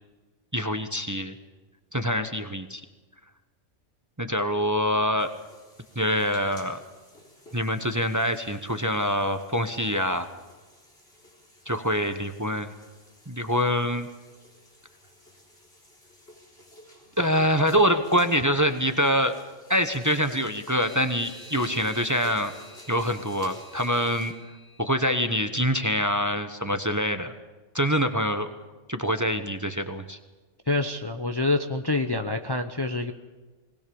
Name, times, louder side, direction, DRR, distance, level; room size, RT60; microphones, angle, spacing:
voice 1, 0.5-1.3 1.9-2.8 4.2-5.3 5.9-6.8 7.5-10.3 11.7-12.7 13.3-14.1 17.2-19.3 19.7-22.5 22.9-24.3 24.8-27.3 27.7-28.5 28.9-30.2, equal, 15° right, 8 dB, 1.0 m, -25 dB
sound 1, 5.2-24.3, left 1 dB, 55° left, 4.3 m, -51 dB
sound 2, 20.8-25.5, right 1 dB, 85° left, 5.4 m, -50 dB
voice 2, 30.7-33.1, left 2 dB, 20° left, 5 dB, 0.8 m, -26 dB
20.0 x 20.0 x 7.1 m, 1.3 s
omnidirectional pair, 1.3 m